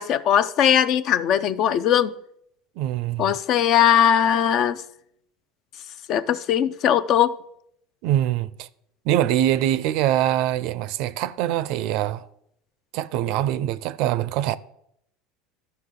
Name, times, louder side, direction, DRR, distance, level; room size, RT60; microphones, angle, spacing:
voice 1, 0.0-2.1 3.2-4.8 6.1-7.3, left 9 dB, 55° left, 0.5 m, -20 dB
voice 2, 2.8-3.4 8.0-8.7 9.0-12.3 12.9-14.6, right 12 dB, 65° right, 0.4 m, -23 dB
13.0 x 5.7 x 3.8 m
supercardioid pair, 105°, 0 cm